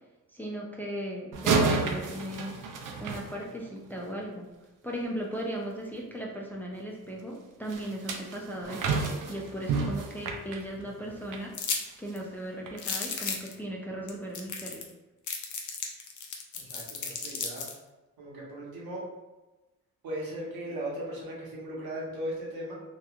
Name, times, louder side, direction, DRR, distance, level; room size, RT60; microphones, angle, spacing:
voice 1, 0.3-2.6 3.0-4.5 4.8-11.5 12.0-14.8, right 1 dB, 5° left, -2 dB, 0.4 m, -37 dB
sound 1, 1.3-3.9 7.7-11.5 11.9-12.1 12.7-12.8, right 4 dB, 60° right, 0.5 m, -31 dB
sound 2, 11.5-11.8 12.2-12.3 12.8-13.5 14.1-14.2 14.3-14.9 15.3-17.7, left 5 dB, 55° left, 0.6 m, -33 dB
voice 2, 16.5-17.7 18.2-19.0 20.0-22.7, right 1 dB, 80° right, -4 dB, 1.0 m, -37 dB
2.9 x 2.2 x 2.4 m, 1.1 s
cardioid pair, 80°, 36 cm